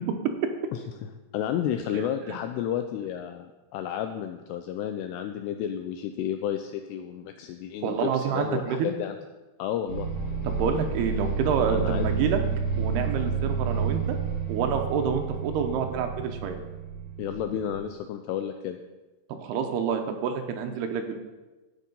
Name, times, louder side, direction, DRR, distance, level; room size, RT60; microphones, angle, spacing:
voice 1, 1.3-9.2 9.6-10.1 11.7-12.1 17.2-18.8, left 10 dB, 85° left, 7 dB, 2.4 m, -31 dB
voice 2, 7.8-8.9 10.4-12.4 12.8-14.2 14.5-16.6 19.4-21.2, right 7 dB, 75° right, 5 dB, 2.6 m, -28 dB
sound 1, 9.9-17.8, right 5 dB, 35° left, 2.4 m, -30 dB
11.5 x 8.2 x 5.4 m, 1.1 s
omnidirectional pair, 5.3 m